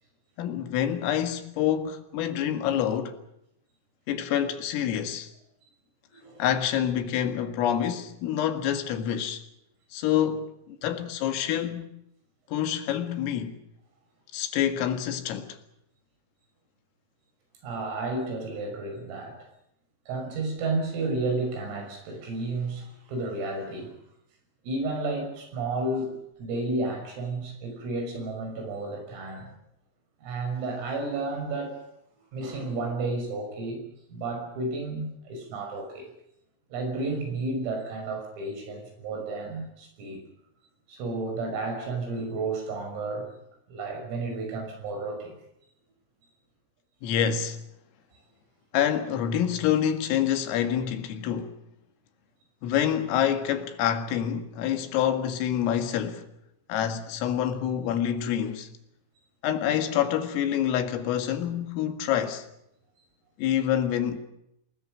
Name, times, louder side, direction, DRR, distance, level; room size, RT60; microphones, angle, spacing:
voice 1, 0.4-3.2 4.1-5.3 6.4-9.4 9.9-11.9 12.5-13.6 14.3-15.6 47.0-47.6 48.7-51.6 52.6-56.3 56.7-58.7 59.4-62.5 63.4-64.2, left 10 dB, 85° left, 4.6 m, -27 dB
voice 2, 6.1-6.4 17.6-19.4 20.1-23.9 24.6-29.5 30.2-31.8 32.3-33.8 34.1-36.1 36.7-40.2 40.9-43.3 43.7-45.3, right 2 dB, 90° right, 8.4 m, -32 dB
27.5 x 20.5 x 6.5 m
omnidirectional pair, 5.8 m